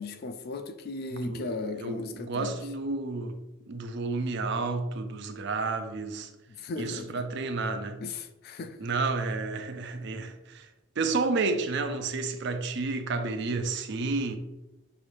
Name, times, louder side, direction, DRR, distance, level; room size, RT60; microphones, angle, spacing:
voice 1, 0.0-2.6 6.6-7.2 8.0-8.9, left 3 dB, 45° left, 0.3 m, -37 dB
voice 2, 1.1-3.4 3.7-6.3 6.8-8.0 8.8-10.7 11.0-14.4, right 3 dB, 55° right, 0.5 m, -31 dB
5.5 x 2.6 x 3.2 m
head